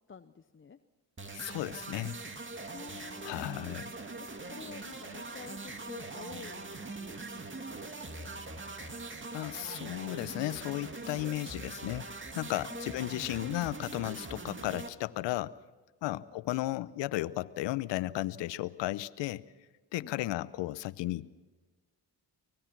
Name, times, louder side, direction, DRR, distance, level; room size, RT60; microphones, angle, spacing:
voice 1, 0.1-0.8 2.7-3.8 4.2-6.7 7.0-8.3 12.7-13.5 14.3-14.5 16.1-16.3 20.0-20.4, left 6 dB, 30° left, 9 dB, 0.9 m, -50 dB
sound 1, 1.2-14.9, right 3 dB, 25° right, 2.4 m, -42 dB
voice 2, 1.3-2.2 3.2-3.9 9.3-12.1 12.4-15.6 16.0-19.4 19.9-21.4, left 16 dB, 85° left, 17 dB, 0.8 m, -34 dB
24.5 x 19.5 x 6.0 m, 1.3 s
supercardioid pair, 65°, 43 cm